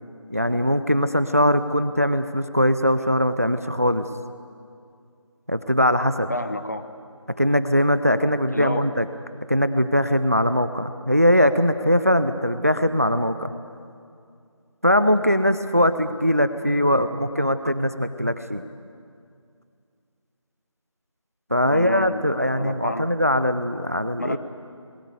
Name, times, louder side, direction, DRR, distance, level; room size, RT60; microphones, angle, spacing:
voice 1, 0.3-4.1 5.5-6.3 7.4-9.1 9.5-13.5 14.8-18.6 21.5-24.4, equal, 30° right, 12 dB, 0.5 m, -21 dB
voice 2, 6.3-6.9 8.5-8.9 21.6-22.2 22.6-23.1 24.2-24.4, left 1 dB, 30° left, 10 dB, 0.8 m, -29 dB
20.5 x 18.5 x 8.1 m, 2.3 s
figure-of-eight pair, 175°, 16 cm